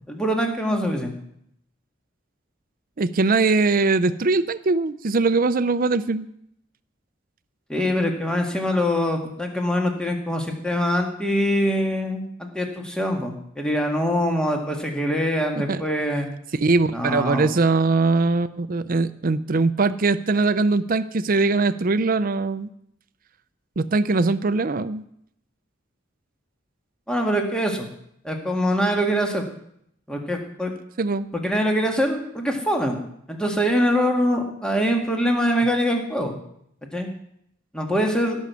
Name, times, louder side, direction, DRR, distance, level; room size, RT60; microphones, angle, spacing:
voice 1, 0.1-1.1 7.7-16.3 16.9-17.5 27.1-27.9 28.2-29.4 30.1-30.7 31.3-33.0 33.3-36.3 36.8-37.1 37.7-38.4, equal, 5° left, 2 dB, 1.7 m, -23 dB
voice 2, 3.0-6.3 15.6-15.8 16.6-22.7 23.8-25.0 31.0-31.3, right 3 dB, 45° right, 14 dB, 0.6 m, -21 dB
16.5 x 6.4 x 6.9 m, 0.72 s
head